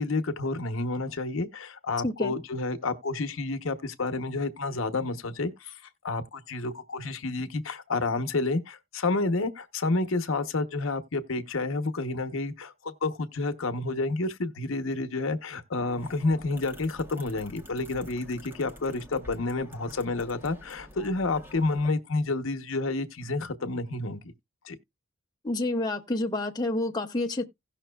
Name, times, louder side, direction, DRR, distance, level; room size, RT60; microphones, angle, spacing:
voice 1, 0.0-5.7 6.0-24.2 24.6-24.8, left 3 dB, 70° left, 0.8 m, -30 dB
voice 2, 2.0-2.3 25.4-27.5, left 2 dB, 20° left, 0.6 m, -28 dB
sound 1, 15.8-21.9, left 1 dB, 10° right, 0.9 m, -48 dB
16.5 x 5.8 x 2.2 m
head